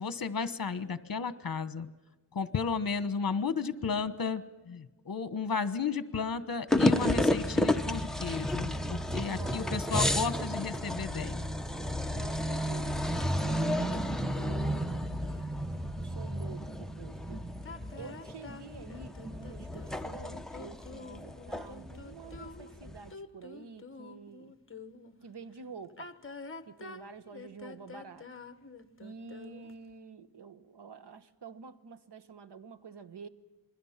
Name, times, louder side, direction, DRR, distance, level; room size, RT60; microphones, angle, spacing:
voice 1, 0.0-1.9 2.3-11.4, left 5 dB, 55° left, 13 dB, 1.3 m, -33 dB
sound 1, 6.7-23.1, left 1 dB, ahead, 1.0 m, -32 dB
voice 2, 9.2-10.1 12.1-15.4 16.0-17.4 18.0-24.5 25.2-26.1 26.7-28.3 29.0-33.3, right 5 dB, 70° right, 10 dB, 1.3 m, -48 dB
sound 2, 17.6-25.2 25.9-29.9, left 4 dB, 30° left, 1.3 m, -48 dB
28.5 x 21.5 x 5.9 m, 1.2 s
wide cardioid pair, 105°, 42 cm